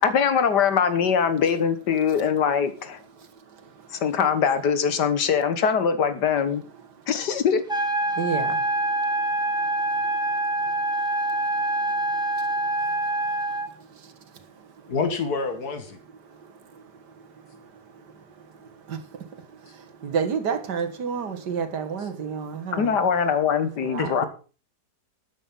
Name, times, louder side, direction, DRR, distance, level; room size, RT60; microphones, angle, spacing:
voice 1, 0.0-3.0 3.9-6.6 7.1-7.6 22.7-24.2, left 7 dB, 90° left, 1.9 m, -22 dB
sound 1, 7.7-13.7, right 1 dB, 5° right, 1.7 m, -25 dB
voice 2, 8.2-8.5 20.0-22.9 23.8-24.1, right 6 dB, 85° right, 2.2 m, -28 dB
voice 3, 14.9-16.0 22.0-22.1 24.0-24.3, left 4 dB, 70° left, 2.4 m, -28 dB
12.5 x 8.9 x 5.5 m
omnidirectional pair, 1.7 m